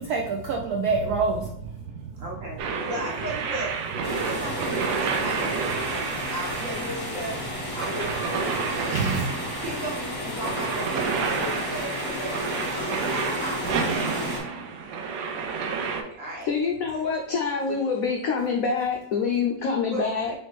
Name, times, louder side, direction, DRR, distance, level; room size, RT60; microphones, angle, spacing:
voice 1, 0.0-2.9 6.9-7.0 8.9-9.6 16.1-16.2, right 4 dB, 75° right, 0 dB, 0.9 m, -28 dB
voice 2, 2.2-3.8 4.1-7.4 7.7-8.8 9.6-14.1 16.2-16.5 18.1-18.2 19.9-20.1, right 1 dB, 50° right, -4 dB, 1.3 m, -36 dB
sound 1, 2.6-16.0, right 5 dB, 90° right, 1.4 m, -30 dB
sound 2, 4.0-14.4, left 2 dB, 20° left, 1.0 m, -33 dB
voice 3, 16.4-20.3, left 5 dB, 80° left, 1 dB, 0.7 m, -26 dB
4.1 x 3.2 x 3.1 m, 0.71 s
omnidirectional pair, 2.0 m